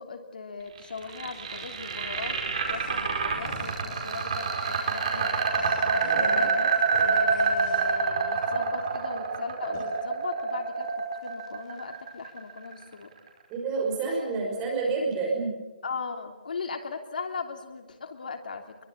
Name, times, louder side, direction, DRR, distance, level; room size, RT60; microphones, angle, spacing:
voice 1, 0.0-5.3 5.8-6.7 7.0-10.9 11.2-13.1 15.8-18.8, left 5 dB, 65° left, 4 dB, 3.1 m, -38 dB
sound 1, 0.8-12.8, right 5 dB, 40° right, 4.8 m, -27 dB
sound 2, 2.5-8.8 9.2-9.3 9.7-9.9, left 2 dB, 15° left, 6.4 m, -46 dB
voice 2, 6.0-6.5 13.5-15.5, right 4 dB, 15° right, -1 dB, 5.8 m, -29 dB
24.5 x 23.0 x 7.4 m, 1.1 s
hypercardioid pair, 180°, 5 cm